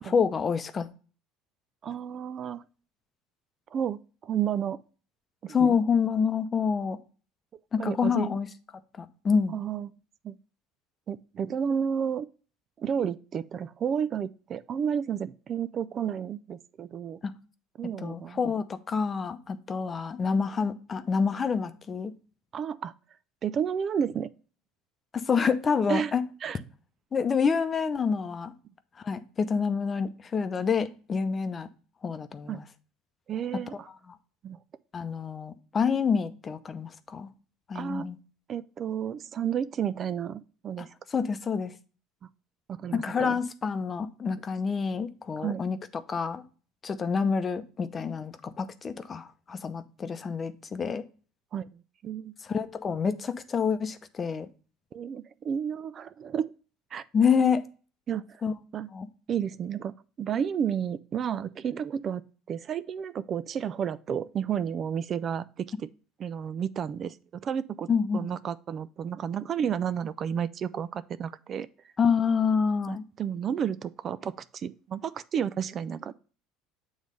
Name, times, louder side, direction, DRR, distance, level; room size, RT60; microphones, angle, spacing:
voice 1, 0.0-0.9 5.5-7.0 7.7-8.5 9.0-9.5 17.2-17.3 18.0-22.1 25.1-26.2 27.1-28.5 29.0-31.7 32.0-32.6 33.7-33.8 34.1-34.2 34.9-37.3 37.7-38.2 40.8-41.7 42.9-46.4 46.8-51.0 52.4-54.5 57.1-57.6 58.4-58.5 58.9-59.1 67.9-68.3 72.0-73.0, left 6 dB, 30° left, 0.7 m, -27 dB
voice 2, 1.8-2.6 3.7-4.8 5.4-5.8 7.8-8.3 9.5-9.9 10.2-10.4 11.1-12.3 12.8-17.2 17.8-18.5 22.5-22.9 23.4-24.3 25.9-26.1 26.4-26.6 30.7-30.8 32.5-32.6 33.3-33.9 34.4-34.6 37.7-38.1 38.5-40.9 42.7-43.4 45.4-45.6 51.5-52.3 54.9-56.5 56.9-57.0 58.1-58.4 58.7-58.9 59.3-62.2 62.5-65.7 66.2-67.2 67.4-67.9 68.1-71.7 72.9-76.1, right 8 dB, 40° right, 0.3 m, -31 dB
7.3 x 3.2 x 5.2 m
supercardioid pair, 95°, 0 cm